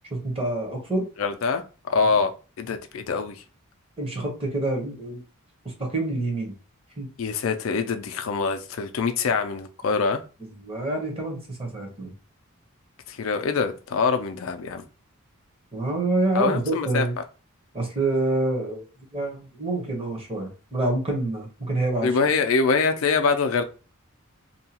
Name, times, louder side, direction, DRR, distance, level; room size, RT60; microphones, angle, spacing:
voice 1, 0.1-1.1 4.0-5.2 5.6-6.5 7.0-7.1 9.8-10.0 10.4-12.1 15.7-17.1 17.7-18.9 19.1-22.2, right 2 dB, 25° right, 0.9 m, -27 dB
voice 2, 1.2-1.6 1.9-2.3 2.6-3.4 7.2-10.2 13.1-14.8 16.3-17.0 22.0-23.6, left 4 dB, 65° left, 0.4 m, -24 dB
2.7 x 2.3 x 2.8 m
head